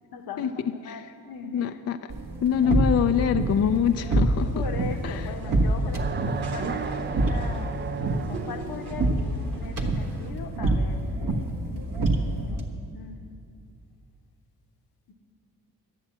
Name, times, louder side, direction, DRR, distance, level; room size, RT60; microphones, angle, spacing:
voice 1, 0.1-1.8 4.5-7.7 8.0-11.0 11.6-12.7 12.9-13.2, left 5 dB, 70° left, 4 dB, 1.2 m, -39 dB
voice 2, 1.5-2.0 2.4-4.6 5.0-5.3, left 8 dB, 40° left, 8 dB, 0.5 m, -25 dB
sound 1, 2.1-12.7, right 2 dB, 55° right, 1.5 m, -27 dB
sound 2, 4.4-10.3, right 4 dB, 80° right, 1.3 m, -43 dB
sound 3, 5.9-8.8, right 6 dB, 30° right, 0.5 m, -34 dB
11.0 x 7.4 x 7.4 m, 2.5 s
supercardioid pair, 55°, 38 cm